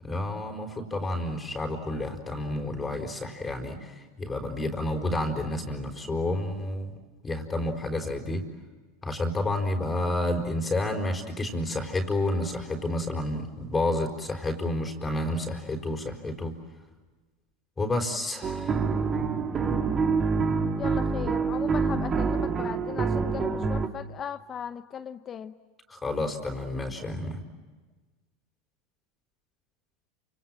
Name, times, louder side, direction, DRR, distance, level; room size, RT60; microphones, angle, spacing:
voice 1, 0.0-6.9 7.2-8.4 9.0-16.5 17.8-18.8 25.9-27.4, left 1 dB, 20° left, 3 dB, 4.5 m, -30 dB
sound 1, 18.4-23.9, right 5 dB, 30° right, 2.5 m, -26 dB
voice 2, 20.8-25.5, left 8 dB, 35° left, 10 dB, 0.9 m, -37 dB
28.5 x 27.0 x 7.6 m, 1.3 s
hypercardioid pair, 95°, 0 cm